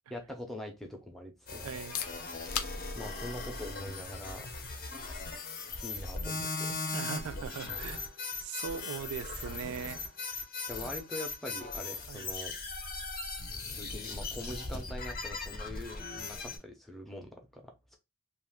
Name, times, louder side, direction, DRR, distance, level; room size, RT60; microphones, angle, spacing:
voice 1, 0.1-1.8 2.9-4.5 5.8-6.7 10.7-12.5 13.7-18.0, left 1 dB, ahead, 0.5 m, -43 dB
sound 1, 1.5-16.6, left 3 dB, 40° left, 0.6 m, -39 dB
voice 2, 1.6-2.0 6.9-8.0 8.4-10.0 12.1-12.3, right 7 dB, 70° right, 0.3 m, -40 dB
sound 2, 1.7-17.3, left 9 dB, 85° left, 0.5 m, -49 dB
2.5 x 2.4 x 3.4 m
head